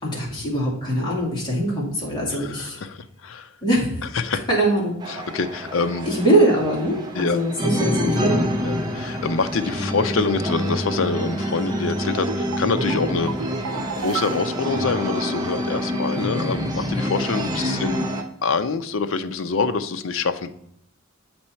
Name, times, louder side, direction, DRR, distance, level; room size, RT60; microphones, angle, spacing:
voice 1, 0.0-2.8 3.6-4.0 4.5-5.0 6.0-8.9 17.5-17.9, right 1 dB, 20° left, -5 dB, 2.3 m, -22 dB
voice 2, 2.3-3.5 4.1-4.4 5.1-6.1 7.1-7.4 8.6-18.1 18.4-20.6, left 4 dB, 65° left, 10 dB, 0.6 m, -25 dB
sound 1, 5.0-18.2, equal, 20° right, 0.8 m, -27 dB
sound 2, 12.2-15.6 15.9-16.0, right 7 dB, 90° right, 0.5 m, -33 dB
7.7 x 4.3 x 4.3 m, 0.73 s
head